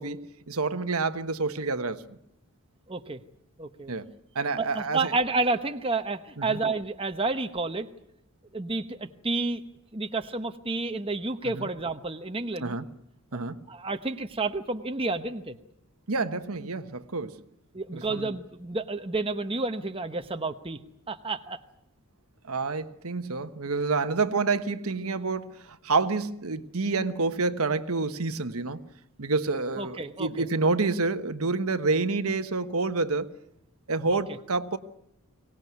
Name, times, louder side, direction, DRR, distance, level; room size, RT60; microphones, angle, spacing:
voice 1, 0.0-2.2 3.9-4.1 4.3-5.1 6.4-6.6 11.4-11.7 12.6-12.8 13.3-13.6 16.1-17.3 17.9-18.3 22.5-28.8 29.2-33.3 33.9-34.8, right 3 dB, 75° right, 1.2 m, -28 dB
voice 2, 2.9-3.2 3.6-3.9 4.6-7.9 8.5-9.6 9.9-12.8 13.7-15.6 17.7-20.8 21.1-21.6 29.8-30.5 34.1-34.2, right 3 dB, 25° right, 1.0 m, -30 dB
23.5 x 18.5 x 9.5 m
head